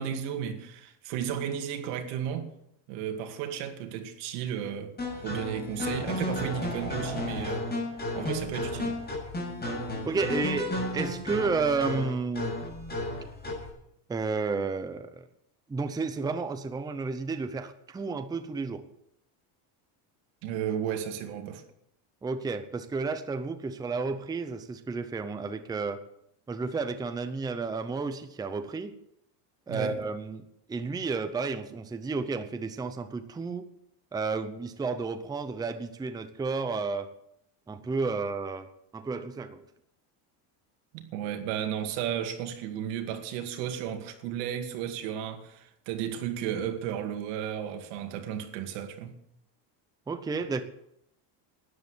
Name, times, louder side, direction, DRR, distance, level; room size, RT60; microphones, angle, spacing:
voice 1, 0.0-2.5 2.9-4.9 5.2-7.7 8.1-9.0 20.4-21.6 29.7-30.0 40.9-49.2, right 9 dB, 80° right, 2.3 m, -34 dB
sound 1, 5.0-13.7, left 1 dB, 20° left, 7.3 m, -33 dB
voice 2, 10.1-12.6 14.1-15.2 15.7-18.8 22.2-26.0 26.5-29.0 29.7-30.4 30.7-33.7 34.1-37.1 37.7-39.6 50.1-50.6, right 4 dB, 10° right, 0.7 m, -32 dB
12.5 x 10.5 x 8.0 m
cardioid pair, 155°, 48 cm